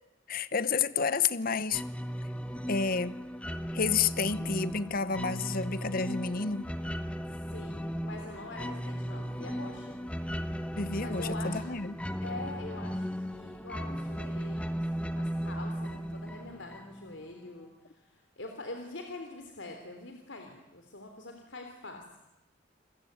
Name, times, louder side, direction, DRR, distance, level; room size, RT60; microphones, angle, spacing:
voice 1, 0.3-1.8 2.7-3.2 3.7-6.6 10.8-11.9, left 5 dB, 50° left, 15 dB, 1.0 m, -30 dB
sound 1, 1.7-17.2, equal, 5° left, 1.3 m, -36 dB
voice 2, 7.5-10.0 11.0-11.6 12.2-14.8 15.1-22.2, left 2 dB, 75° left, 4 dB, 3.5 m, -44 dB
29.0 x 22.0 x 9.5 m, 0.92 s
head